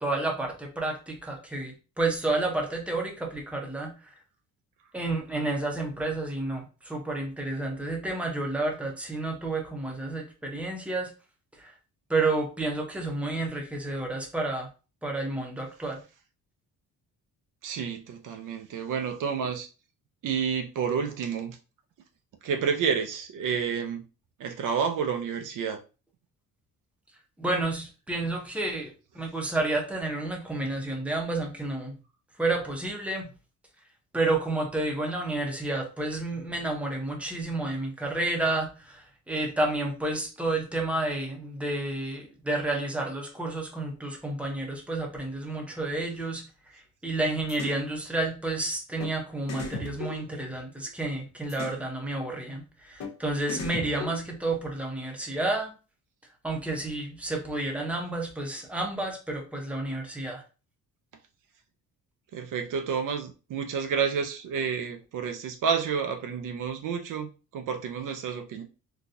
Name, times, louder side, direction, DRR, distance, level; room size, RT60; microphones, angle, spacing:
voice 1, 0.0-3.9 4.9-11.1 11.6-11.7 12.1-14.7 15.0-16.0 27.4-32.0 32.4-33.3 34.1-46.4 46.7-55.7 56.4-60.4, right 2 dB, 5° right, 0.7 m, -30 dB
voice 2, 17.6-19.7 20.2-21.6 22.4-24.0 24.4-25.8 62.3-68.6, right 6 dB, 60° right, 0.5 m, -30 dB
sound 1, 47.5-47.8 49.0-49.1 49.5-50.9 51.5-51.8 53.0-53.1 53.5-54.6, left 2 dB, 50° left, 0.7 m, -37 dB
4.0 x 2.3 x 2.5 m
cardioid pair, 140°, 36 cm